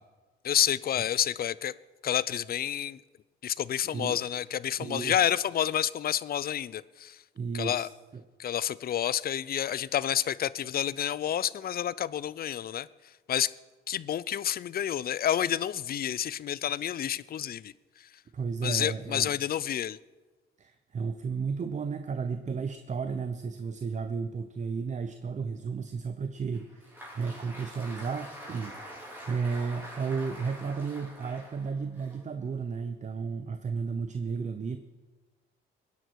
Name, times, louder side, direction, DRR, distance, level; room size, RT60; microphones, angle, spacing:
voice 1, 0.4-1.7 2.0-3.0 3.4-7.2 7.5-7.9 8.4-12.9 13.3-13.5 13.9-17.7 18.6-20.0, left 10 dB, 50° left, 20 dB, 0.5 m, -29 dB
voice 2, 4.8-5.4 7.3-8.2 18.3-19.3 20.6-34.8, right 5 dB, 35° right, 8 dB, 0.8 m, -33 dB
Applause, 26.5-32.8, equal, 10° right, 4.7 m, -46 dB
19.5 x 11.0 x 4.7 m, 1.3 s
cardioid pair, 90°, 20 cm